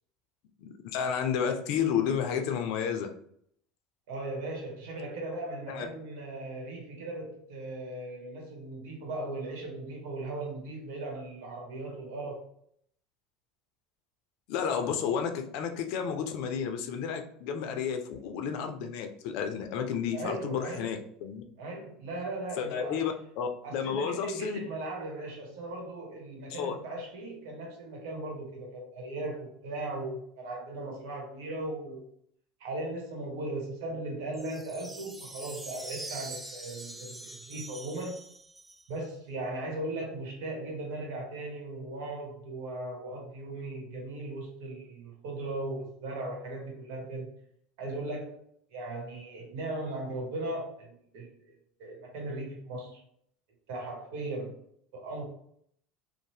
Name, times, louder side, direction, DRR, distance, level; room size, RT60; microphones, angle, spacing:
voice 1, 0.6-3.1 5.7-5.9 14.5-21.4 22.6-24.6 26.5-26.8, left 7 dB, 65° left, 6 dB, 0.4 m, -31 dB
voice 2, 4.1-12.4 20.1-21.0 21.6-23.1 23.6-32.1 32.6-38.2 38.9-47.3 47.8-48.4 48.7-51.3 51.8-53.0 53.7-54.6 54.9-55.2, right 2 dB, 70° right, -1 dB, 1.1 m, -38 dB
sound 1, 34.3-39.1, right 2 dB, 10° right, 0.3 m, -44 dB
2.6 x 2.1 x 3.2 m, 0.67 s
hypercardioid pair, 85°, 0 cm